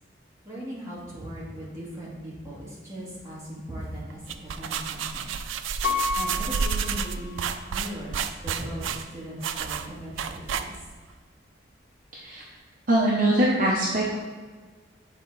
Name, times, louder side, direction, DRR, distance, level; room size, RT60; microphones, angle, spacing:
voice 1, 0.4-5.3 6.1-7.4 7.7-10.7, equal, 15° right, -8 dB, 2.0 m, -38 dB
sound 1, 4.1-11.0, right 6 dB, 85° right, 0.4 m, -31 dB
Piano, 5.8-7.8 8.4-8.5, left 4 dB, 70° left, 1.0 m, -31 dB
voice 2, 12.9-14.2, right 1 dB, 45° right, -3 dB, 0.8 m, -22 dB
7.5 x 4.1 x 4.0 m, 1.5 s
head